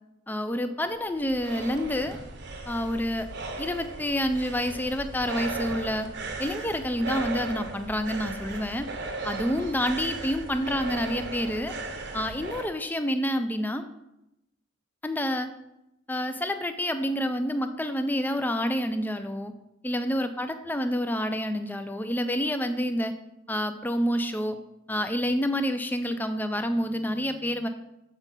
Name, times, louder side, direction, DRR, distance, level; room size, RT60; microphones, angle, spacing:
voice 1, 0.3-2.2 2.7-3.3 3.6-6.1 6.4-8.9 9.2-11.7 12.1-13.8 15.0-15.5 16.1-19.5 19.8-23.1 23.5-24.6 24.9-27.7, equal, 10° left, 8 dB, 0.4 m, -28 dB
sound 1, 0.8-12.7, right 3 dB, 55° right, 0.8 m, -37 dB
7.2 x 5.5 x 3.7 m, 0.89 s
head